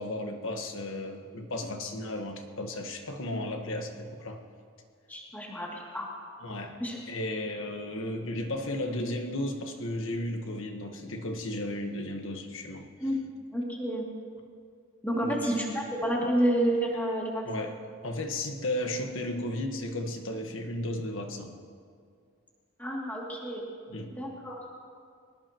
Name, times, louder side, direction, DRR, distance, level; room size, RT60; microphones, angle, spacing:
voice 1, 0.0-4.4 6.4-6.8 7.1-12.9 15.2-15.7 17.5-17.7 18.0-21.5 23.9-24.2, left 1 dB, 70° left, 4 dB, 1.5 m, -34 dB
voice 2, 5.1-6.1 6.8-7.0 13.0-14.0 15.0-17.7 22.8-23.7 24.2-24.5, right 1 dB, 10° left, -3 dB, 2.6 m, -30 dB
23.0 x 19.5 x 3.0 m, 2.2 s
head